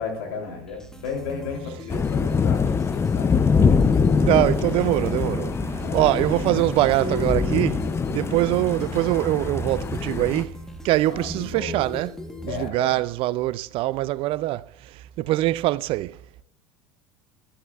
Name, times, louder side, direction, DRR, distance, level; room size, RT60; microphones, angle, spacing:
voice 1, 0.0-3.3 5.8-6.2 11.0-11.8 12.5-13.0 15.2-15.3, left 5 dB, 75° left, 3.2 m, -34 dB
sound 1, 0.7-12.7, left 1 dB, 5° left, 1.2 m, -38 dB
sound 2, 1.9-10.4, left 5 dB, 20° left, 0.5 m, -24 dB
voice 2, 4.2-5.6 5.9-7.8 8.1-10.6 10.8-12.1 12.4-14.7 15.2-16.2, right 16 dB, 50° right, 0.4 m, -23 dB
sound 3, 4.8-9.7, left 1 dB, 15° right, 3.6 m, -37 dB
12.5 x 8.4 x 2.4 m
hypercardioid pair, 80°, 12 cm